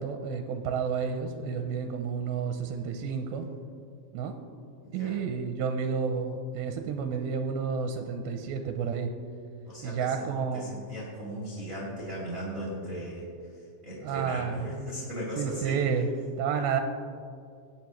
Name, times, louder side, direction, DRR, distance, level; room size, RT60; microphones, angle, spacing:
voice 1, 0.0-3.5 4.1-4.4 4.9-9.1 9.8-10.7 14.0-14.7 15.4-16.1 16.4-16.8, right 6 dB, 85° right, 5 dB, 2.4 m, -30 dB
voice 2, 4.8-5.2 9.6-10.3 10.5-13.3 13.8-15.8, equal, 30° right, -5 dB, 1.8 m, -37 dB
18.0 x 9.4 x 3.1 m, 2.4 s
omnidirectional pair, 4.5 m